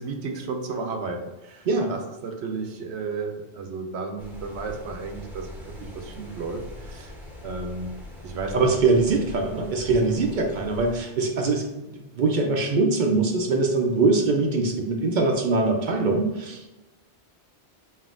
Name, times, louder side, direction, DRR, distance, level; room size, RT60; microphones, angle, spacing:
voice 1, 0.0-7.1 7.4-7.9 8.2-8.7, right 4 dB, 75° right, 4 dB, 0.9 m, -33 dB
sound 1, 4.2-11.0, left 1 dB, ahead, 0.6 m, -41 dB
voice 2, 8.5-16.7, right 3 dB, 55° right, 2 dB, 0.6 m, -23 dB
5.5 x 2.6 x 2.5 m, 1.0 s
omnidirectional pair, 1.1 m